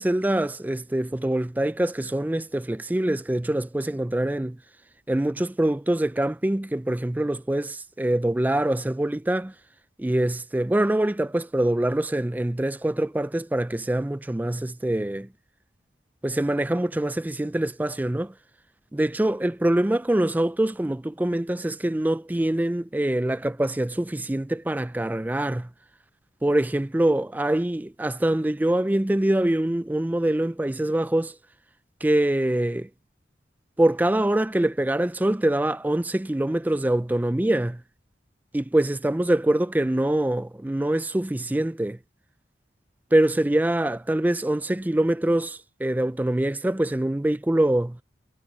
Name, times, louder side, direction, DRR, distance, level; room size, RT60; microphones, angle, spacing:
voice 1, 0.0-4.6 5.1-9.5 10.0-15.3 16.2-18.3 18.9-25.7 26.4-31.4 32.0-32.9 33.8-37.8 38.5-42.0 43.1-48.0, right 1 dB, 10° right, 0.3 m, -24 dB
head